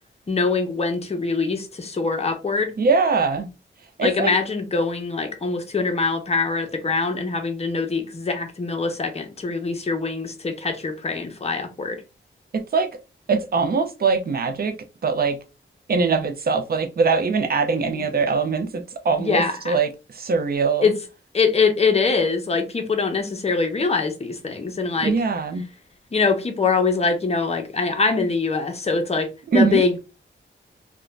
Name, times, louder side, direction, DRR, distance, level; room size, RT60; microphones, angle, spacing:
voice 1, 0.3-2.7 4.0-12.0 17.8-18.1 19.2-19.8 20.8-20.9 21.3-25.1 26.1-29.3 29.5-30.0, left 4 dB, 30° left, 0.6 m, -23 dB
voice 2, 2.8-3.5 4.0-4.3 12.5-12.9 13.3-14.8 15.0-15.4 15.9-20.9 25.0-25.7 29.5-29.8, right 4 dB, 50° right, 0.5 m, -22 dB
2.4 x 2.1 x 3.1 m
wide cardioid pair, 90°, 21 cm